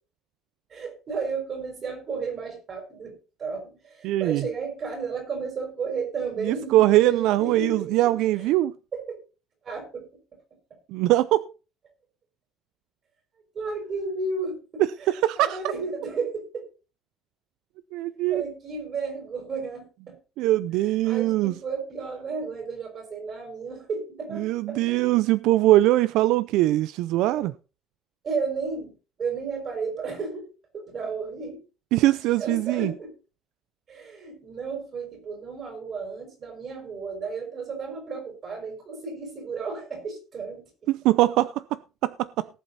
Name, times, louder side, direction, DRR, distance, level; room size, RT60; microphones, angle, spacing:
voice 1, 0.7-8.5 8.9-9.2 9.6-10.1 13.5-16.7 18.3-20.2 20.7-24.8 27.3-27.5 28.2-28.9 29.2-30.5 30.7-31.6 32.4-33.1 33.9-40.9, right 4 dB, 35° right, 5.7 m, -33 dB
voice 2, 4.0-4.4 6.4-8.7 10.9-11.5 15.1-15.6 17.9-18.4 20.4-21.5 24.4-27.5 31.9-32.9 40.9-42.5, right 16 dB, 70° right, 0.5 m, -22 dB
18.5 x 7.8 x 4.1 m
cardioid pair, 175°, 0 cm